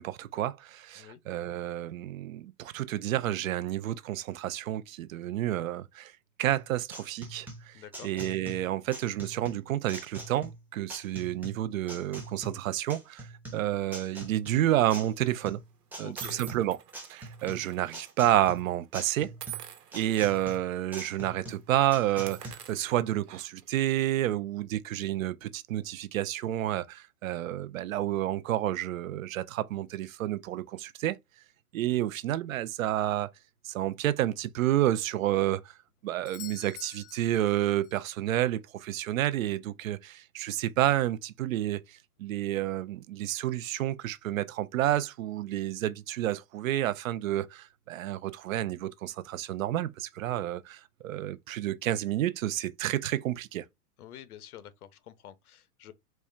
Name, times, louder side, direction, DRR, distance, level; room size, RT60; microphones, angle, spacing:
voice 1, 0.0-6.1 6.4-7.8 8.0-13.3 13.5-15.6 16.0-16.8 17.1-19.3 19.9-31.2 31.7-33.3 33.6-35.6 36.0-53.6, right 13 dB, 60° right, 0.5 m, -30 dB
sound 1, 6.5-22.5, right 1 dB, 5° right, 0.7 m, -44 dB
voice 2, 7.7-8.1 16.0-16.4 54.0-55.9, left 10 dB, 65° left, 0.8 m, -48 dB
sound 2, 14.5-14.8 15.5-15.6 16.2-18.1 18.4-18.6 19.4-20.6 21.0-21.2 21.4-21.6 22.1-23.7, right 11 dB, 75° right, 1.1 m, -46 dB
Doorbell, 36.2-38.1 42.2-42.3, left 12 dB, 50° left, 0.4 m, -48 dB
4.3 x 2.3 x 3.1 m
hypercardioid pair, 130°, 47 cm